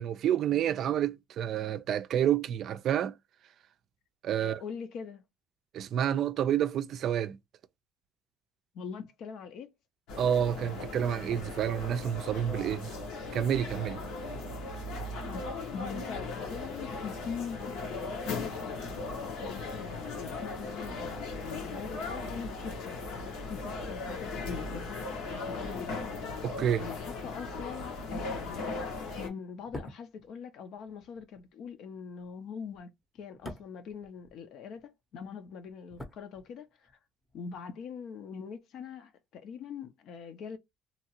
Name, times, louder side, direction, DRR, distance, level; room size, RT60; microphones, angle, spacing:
voice 1, 0.0-3.2 4.2-4.6 5.7-7.4 10.2-12.9 13.3-14.0 26.4-26.9, right 9 dB, 55° right, 0.4 m, -29 dB
voice 2, 4.4-5.2 8.7-9.7 15.2-15.4 15.7-23.0 23.5-26.0 26.8-28.8 29.1-32.9 33.2-36.9 37.3-40.6, left 6 dB, 60° left, 0.6 m, -43 dB
sound 1, 10.1-29.3, left 3 dB, 85° left, 1.2 m, -38 dB
sound 2, 29.5-34.9 35.1-37.0 37.2-37.4, left 1 dB, 15° left, 0.7 m, -48 dB
2.8 x 2.4 x 2.9 m
cardioid pair, 135°, 0 cm